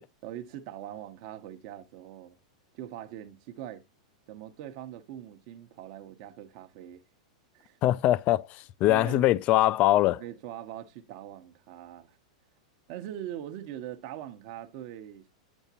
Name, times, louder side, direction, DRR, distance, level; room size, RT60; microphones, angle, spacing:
voice 1, 0.2-2.4 2.7-3.8 4.3-7.0 7.5-7.8 8.9-9.3 10.2-12.2 12.9-15.3, right 11 dB, 50° right, 0.9 m, -42 dB
voice 2, 7.8-10.2, left 15 dB, 40° left, 0.4 m, -23 dB
8.1 x 7.2 x 2.7 m
hypercardioid pair, 125°, 4 cm